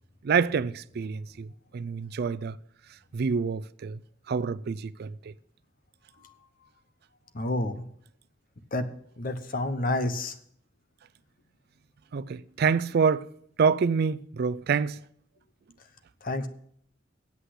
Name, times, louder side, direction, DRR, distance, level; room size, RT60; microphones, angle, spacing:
voice 1, 0.2-2.6 3.1-4.0 4.3-5.3 12.1-13.3 13.6-15.0, right 5 dB, 55° right, 0.4 m, -27 dB
voice 2, 7.3-7.8 8.7-8.8 9.2-10.3 16.2-16.5, left 2 dB, 50° left, 0.9 m, -29 dB
8.2 x 8.1 x 7.8 m
head